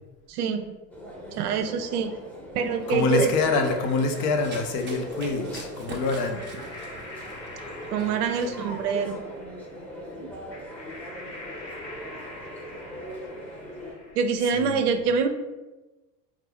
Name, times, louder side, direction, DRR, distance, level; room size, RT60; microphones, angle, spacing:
voice 1, 0.3-0.6 1.4-2.1 2.5-3.3 7.9-9.2 10.2-10.3 14.2-15.3, right 6 dB, 65° right, 7 dB, 0.6 m, -25 dB
sound 1, 0.9-13.9, equal, 5° left, 0.8 m, -40 dB
voice 2, 2.9-6.4 14.4-14.8, left 3 dB, 45° left, 4 dB, 0.7 m, -26 dB
sound 2, 3.2-14.3, left 1 dB, 85° left, 1.0 m, -45 dB
Run, 3.3-8.9, right 3 dB, 25° right, 0.6 m, -45 dB
4.2 x 2.4 x 3.4 m, 1.1 s
figure-of-eight pair, 75°, 50 cm